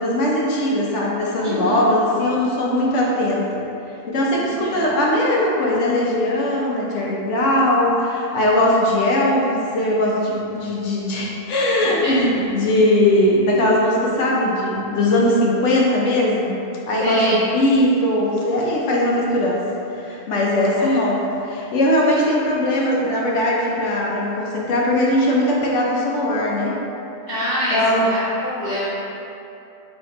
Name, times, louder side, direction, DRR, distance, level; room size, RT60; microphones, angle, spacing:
voice 1, 0.0-3.6 4.1-16.5 16.9-19.6 19.9-21.2 21.5-26.7 27.7-28.1, left 1 dB, 70° left, -3 dB, 0.9 m, -19 dB
voice 2, 1.4-1.8 4.5-4.8 12.0-12.4 17.0-17.4 20.7-21.1 27.3-28.9, equal, 30° left, -17 dB, 1.4 m, -25 dB
3.5 x 2.9 x 3.6 m, 2.9 s
omnidirectional pair, 1.4 m